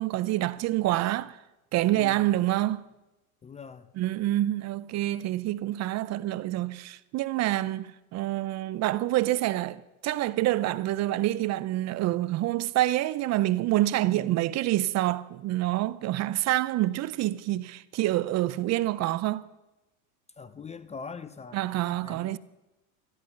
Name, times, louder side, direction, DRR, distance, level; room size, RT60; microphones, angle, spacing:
voice 1, 0.0-1.4 1.7-2.8 4.0-19.4 21.5-22.4, right 15 dB, 40° right, 0.6 m, -27 dB
voice 2, 1.9-2.4 3.4-3.9 14.0-14.4 20.4-21.6 22.0-22.4, left 5 dB, 15° left, 0.5 m, -43 dB
14.0 x 11.5 x 6.5 m
supercardioid pair, 105°, 43 cm